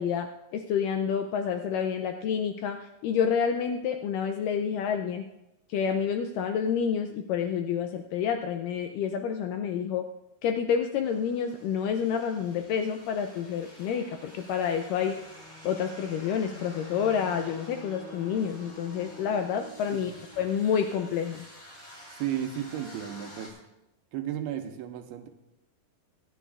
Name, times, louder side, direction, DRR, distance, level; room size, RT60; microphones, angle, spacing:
voice 1, 0.0-5.3 5.7-10.0 10.4-15.2 15.6-20.1 20.4-21.5, left 7 dB, 85° left, 6 dB, 1.9 m, -29 dB
sound 1, 11.0-23.5, left 1 dB, 15° left, 3.5 m, -47 dB
voice 2, 22.2-23.6 24.1-25.3, right 10 dB, 85° right, 6 dB, 2.7 m, -33 dB
23.5 x 9.4 x 2.4 m, 0.93 s
omnidirectional pair, 4.3 m